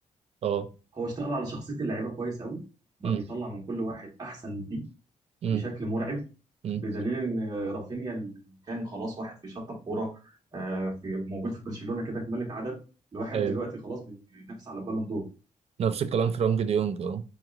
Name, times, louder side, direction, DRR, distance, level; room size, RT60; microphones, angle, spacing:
voice 1, 1.0-2.6 3.0-4.8 5.5-6.2 6.7-8.3 8.7-12.8 13.1-15.2, right 2 dB, 30° right, 1.3 m, -33 dB
voice 2, 15.8-17.2, right 7 dB, 50° right, 0.4 m, -27 dB
4.6 x 3.0 x 2.4 m
wide cardioid pair, 160°, 13 cm